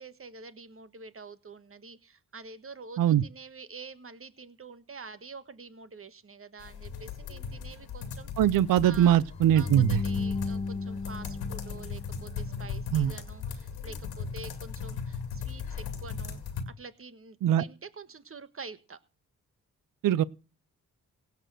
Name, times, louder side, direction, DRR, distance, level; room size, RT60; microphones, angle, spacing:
voice 1, 0.0-8.3 8.8-9.2 9.5-16.4 16.7-19.0, right 4 dB, 35° right, 1.5 m, -47 dB
sound 1, 6.6-16.6, left 6 dB, 85° left, 2.2 m, -38 dB
voice 2, 8.4-10.0 12.9-13.1 17.4-17.6 20.0-20.2, right 11 dB, 60° right, 0.6 m, -22 dB
sound 2, 9.3-12.5, left 4 dB, 15° left, 0.6 m, -34 dB
17.0 x 6.9 x 6.3 m
supercardioid pair, 45°, 37 cm